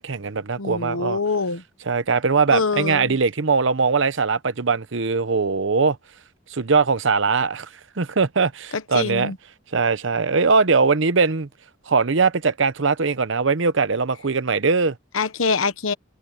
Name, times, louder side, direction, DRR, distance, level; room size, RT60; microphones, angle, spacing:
voice 1, 0.0-1.2 1.9-6.0 6.5-7.7 8.0-9.3 9.7-11.5 11.9-15.0, right 4 dB, 70° right, 0.8 m, -21 dB
voice 2, 0.6-1.6 2.5-3.2 8.7-9.4 15.1-15.9, left 4 dB, 90° left, 1.1 m, -24 dB
head